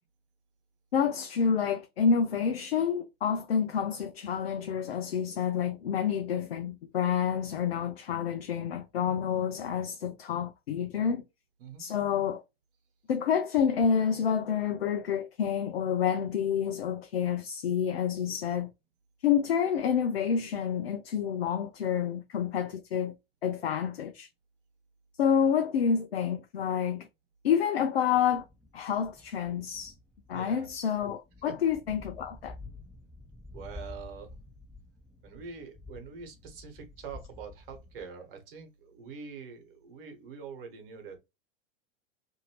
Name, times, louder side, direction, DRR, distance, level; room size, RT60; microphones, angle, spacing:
voice 1, 0.9-11.2 11.8-12.4 13.1-18.7 19.2-23.1 23.4-24.3 25.2-27.1 27.4-28.5 28.7-29.9 30.3-32.5, left 7 dB, 80° left, 0.5 m, -28 dB
sound 1, 28.1-38.0, left 2 dB, ahead, 0.8 m, -50 dB
voice 2, 30.3-30.7 31.5-31.6 33.5-34.3 35.2-41.2, right 5 dB, 60° right, 1.3 m, -44 dB
2.7 x 2.5 x 3.0 m
figure-of-eight pair, 95°, 30 cm